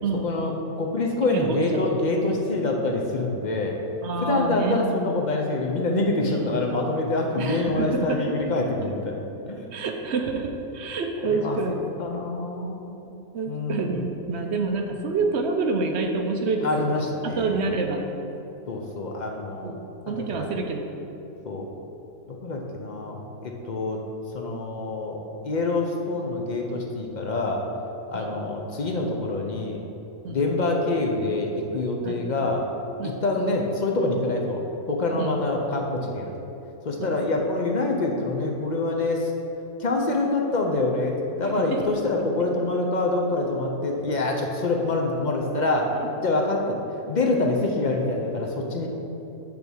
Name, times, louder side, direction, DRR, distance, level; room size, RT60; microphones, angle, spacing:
voice 1, 0.8-3.8 4.2-9.2 9.5-9.6 11.3-11.6 12.0-13.1 13.5-14.0 16.6-17.6 18.7-19.7 20.1-20.5 21.5-21.7 22.3-24.0 24.3-27.6 28.1-29.8 30.3-32.6 33.0-36.3 36.8-39.3 39.8-45.9 46.2-46.8 47.1-48.9, left 2 dB, 45° left, 1 dB, 0.6 m, -26 dB
voice 2, 1.3-1.8 4.0-4.8 6.3-6.6 7.4-8.4 9.7-11.9 13.3-18.0 19.6-20.9 28.1-28.4 30.2-30.4 32.0-32.2 33.0-33.2 35.2-35.4 37.0-37.2, right 3 dB, 60° right, 4 dB, 0.8 m, -28 dB
8.3 x 3.5 x 6.2 m, 2.9 s
omnidirectional pair, 1.6 m